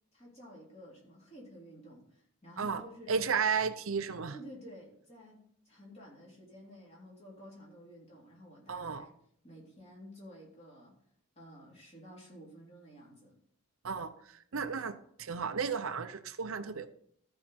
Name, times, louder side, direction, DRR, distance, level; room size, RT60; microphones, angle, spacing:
voice 1, 0.1-3.2 4.3-5.4 5.7-9.1 9.4-10.9 11.4-13.3, equal, 30° left, 3.6 m, -52 dB
voice 2, 3.1-4.3 8.7-9.1 13.8-16.9, right 5 dB, 70° right, 0.6 m, -33 dB
13.5 x 4.8 x 5.7 m
head